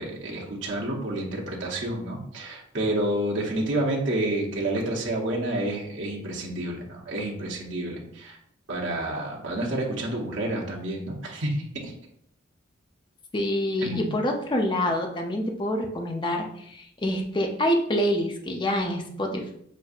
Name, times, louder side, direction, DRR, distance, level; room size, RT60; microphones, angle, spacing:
voice 1, 0.0-8.4 8.7-11.9 13.8-14.2, right 1 dB, 65° right, -3 dB, 0.9 m, -29 dB
voice 2, 13.3-19.5, left 1 dB, 25° left, 2 dB, 0.5 m, -26 dB
6.3 x 2.6 x 2.4 m, 0.70 s
head